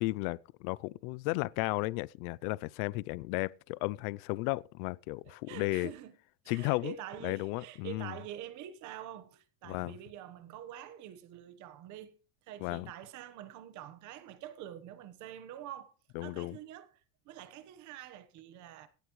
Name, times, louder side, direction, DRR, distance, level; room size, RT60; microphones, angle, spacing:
voice 1, 0.0-5.9 6.5-6.9 7.2-8.1 9.7-10.0 12.6-12.9 16.2-16.6, left 22 dB, 60° left, 0.5 m, -34 dB
voice 2, 5.2-6.2 6.4-12.2 12.4-15.9 16.2-18.9, right 11 dB, 35° right, 1.2 m, -46 dB
17.0 x 11.5 x 3.1 m
cardioid pair, 175°, 49 cm